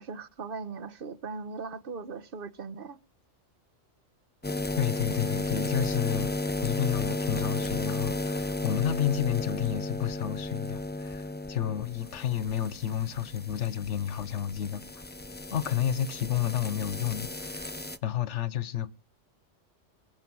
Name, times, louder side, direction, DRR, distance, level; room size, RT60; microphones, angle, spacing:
voice 1, 0.0-3.0, right 4 dB, 50° right, 1.1 m, -39 dB
sound 1, 4.4-18.0, left 2 dB, 15° left, 0.4 m, -34 dB
voice 2, 4.8-6.3 6.6-14.8 15.5-17.7 18.0-18.9, left 10 dB, 70° left, 1.2 m, -30 dB
22.0 x 7.4 x 6.2 m
omnidirectional pair, 1.3 m